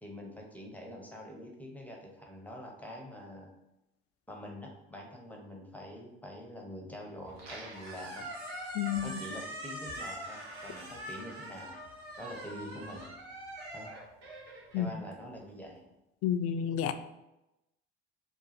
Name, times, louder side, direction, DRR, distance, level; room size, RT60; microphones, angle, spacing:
voice 1, 0.0-3.5 4.3-8.3 9.0-11.8 12.2-13.1 13.7-13.9 14.8-15.9, left 1 dB, 5° left, 0 dB, 0.8 m, -45 dB
Squeak, 7.2-15.5, right 1 dB, 85° right, 1.2 m, -43 dB
voice 2, 8.7-9.2 14.7-14.9 16.2-16.9, left 9 dB, 50° left, 10 dB, 0.5 m, -30 dB
3.8 x 2.4 x 4.2 m, 0.93 s
hypercardioid pair, 75°, 30 cm